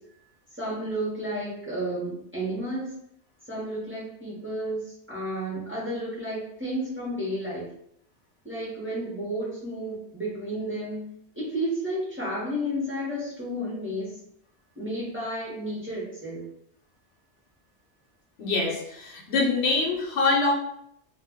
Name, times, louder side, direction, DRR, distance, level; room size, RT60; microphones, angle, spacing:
voice 1, 0.6-2.9 3.5-4.8 5.1-7.6 8.4-11.0 11.4-14.1 14.8-16.4, equal, 10° right, -7 dB, 0.8 m, -32 dB
voice 2, 18.4-20.5, left 3 dB, 70° left, -2 dB, 0.9 m, -24 dB
2.3 x 2.2 x 3.5 m, 0.73 s
omnidirectional pair, 1.1 m